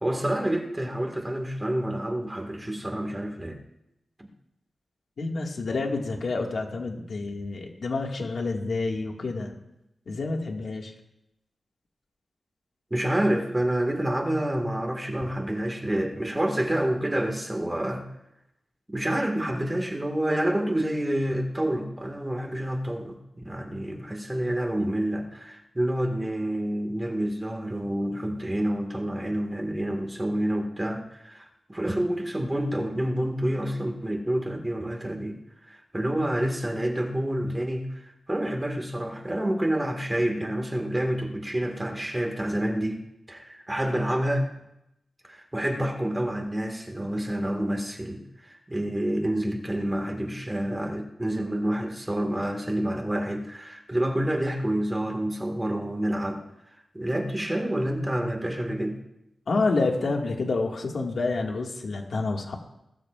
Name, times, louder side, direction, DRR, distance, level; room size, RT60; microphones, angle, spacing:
voice 1, 0.0-3.6 4.2-4.3 12.9-18.0 18.9-35.4 35.7-43.0 43.3-44.5 45.2-56.4 56.9-59.0, right 1 dB, 15° right, 2 dB, 1.8 m, -28 dB
voice 2, 5.2-9.6 10.1-10.9 59.5-62.6, left 3 dB, 70° left, 1 dB, 1.9 m, -28 dB
20.0 x 13.0 x 2.5 m, 0.86 s
wide cardioid pair, 110°, 0 cm